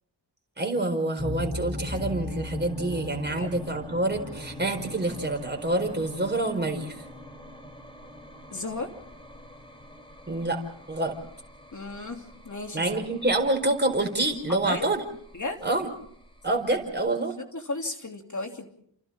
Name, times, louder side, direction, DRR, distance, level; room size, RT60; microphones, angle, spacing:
voice 1, 0.6-7.0 10.3-10.6 10.9-11.2 12.7-15.0 15.6-15.9 16.4-17.4, right 2 dB, 20° right, 3 dB, 4.6 m, -27 dB
sound 1, 1.2-16.9, left 1 dB, 10° left, 4.4 m, -40 dB
voice 2, 8.5-8.9 11.7-12.9 14.5-14.9 15.3-15.6 17.5-18.7, left 2 dB, 40° left, 4 dB, 3.0 m, -34 dB
30.0 x 28.0 x 3.7 m, 0.67 s
wide cardioid pair, 100°, 46 cm